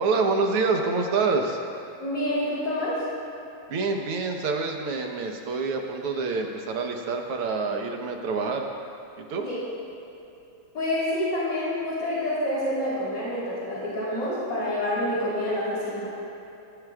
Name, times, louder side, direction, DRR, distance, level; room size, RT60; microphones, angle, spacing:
voice 1, 0.0-1.6 3.7-8.7 9.2-9.5, right 4 dB, 80° right, 2 dB, 2.1 m, -26 dB
voice 2, 2.0-3.0 9.4-9.6 10.7-16.1, left 1 dB, 85° left, -9 dB, 4.8 m, -27 dB
21.5 x 16.0 x 2.4 m, 3.0 s
omnidirectional pair, 2.4 m